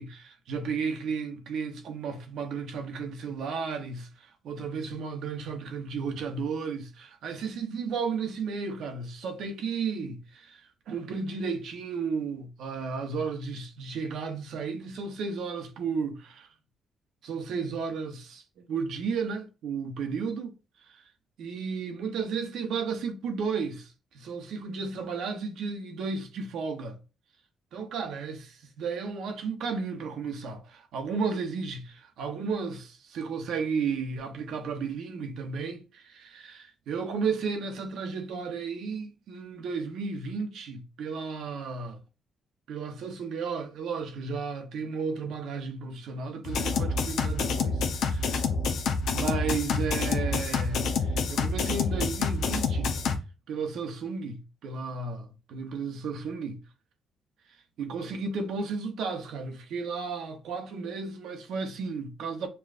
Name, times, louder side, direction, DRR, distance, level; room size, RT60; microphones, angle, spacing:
voice 1, 0.0-16.5 17.2-20.5 20.8-21.0 21.4-27.0 27.7-42.0 42.7-48.2 49.1-52.9 53.5-56.6 57.8-62.5, right 5 dB, 75° right, 0.8 m, -33 dB
sound 1, 46.4-53.2, left 4 dB, 75° left, 0.5 m, -28 dB
6.8 x 2.4 x 2.4 m
cardioid pair, 90°, 0 cm